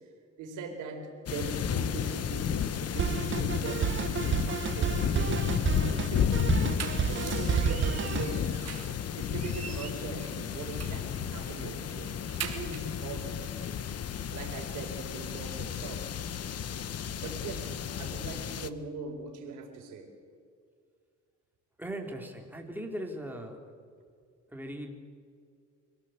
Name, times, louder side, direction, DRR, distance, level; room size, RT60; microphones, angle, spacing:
voice 1, 0.4-6.6 7.1-8.5 9.1-12.2 12.5-13.5 14.1-16.1 17.2-20.1, right 4 dB, 85° right, 3 dB, 4.4 m, -40 dB
sound 1, 1.3-18.7, left 8 dB, 55° left, 1.2 m, -32 dB
Drum kit, 3.0-8.4, right 7 dB, 40° right, 1.0 m, -31 dB
sound 2, 6.5-9.0 9.3-11.1 11.5-11.6 11.9-13.0, right 7 dB, 55° right, 3.3 m, -42 dB
voice 2, 21.8-23.6 24.5-24.9, right 1 dB, 5° right, 2 dB, 4.0 m, -39 dB
25.5 x 18.0 x 8.1 m, 2.1 s
cardioid pair, 90°, 30 cm